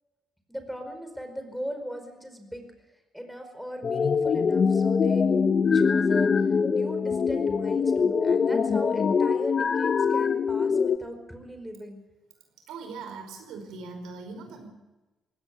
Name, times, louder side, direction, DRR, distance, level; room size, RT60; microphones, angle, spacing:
voice 1, 0.5-2.7 3.1-5.3 5.7-12.0, equal, ahead, 6 dB, 4.9 m, -39 dB
sound 1, 3.8-11.0, left 5 dB, 45° left, 1.0 m, -23 dB
voice 2, 12.6-14.7, right 4 dB, 90° right, 5 dB, 5.2 m, -40 dB
20.0 x 18.0 x 8.7 m, 1.1 s
cardioid pair, 90°, 0 cm